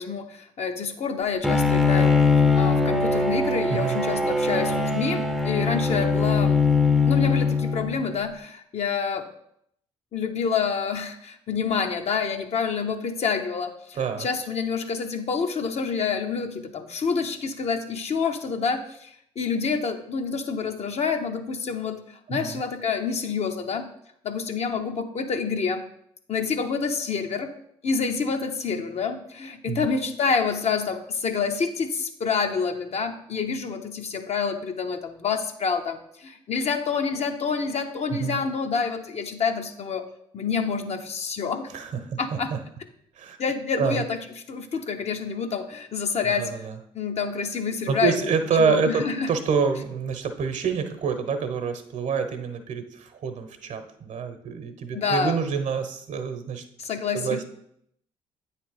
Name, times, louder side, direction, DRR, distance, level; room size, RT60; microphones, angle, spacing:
voice 1, 0.0-2.1 2.5-6.6 7.1-9.3 10.1-23.9 24.2-25.9 26.3-27.5 27.8-40.0 40.3-41.7 42.2-42.5 43.4-44.2 44.5-46.7 46.9-48.3 48.6-49.3 54.9-55.4 56.8-57.4, left 5 dB, 50° left, 5 dB, 0.8 m, -28 dB
Bowed string instrument, 1.4-8.1, left 4 dB, ahead, 0.6 m, -21 dB
voice 2, 3.7-4.0 14.0-14.3 22.3-22.6 29.7-29.9 38.1-38.4 41.7-42.2 42.5-42.6 43.2-43.4 43.8-44.0 46.4-46.8 47.9-56.6 57.1-57.4, right 6 dB, 55° right, 8 dB, 0.9 m, -27 dB
8.6 x 3.3 x 4.8 m, 0.73 s
hypercardioid pair, 55°, 14 cm